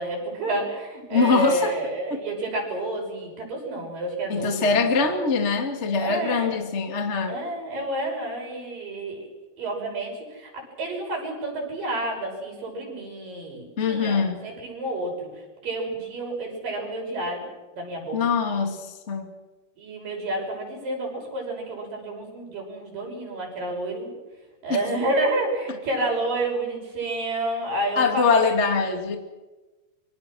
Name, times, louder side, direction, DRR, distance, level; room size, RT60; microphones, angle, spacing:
voice 1, 0.0-5.1 6.0-6.6 7.3-9.3 9.6-15.3 15.6-17.5 17.7-18.2 19.8-24.1 24.6-28.4, right 1 dB, 55° right, 0 dB, 7.7 m, -29 dB
voice 2, 1.1-1.7 2.1-2.2 4.3-7.4 13.8-14.4 18.1-18.8 19.1-19.3 27.9-29.2, left 4 dB, 25° left, 5 dB, 1.5 m, -23 dB
26.0 x 25.0 x 6.2 m, 1.1 s
omnidirectional pair, 4.6 m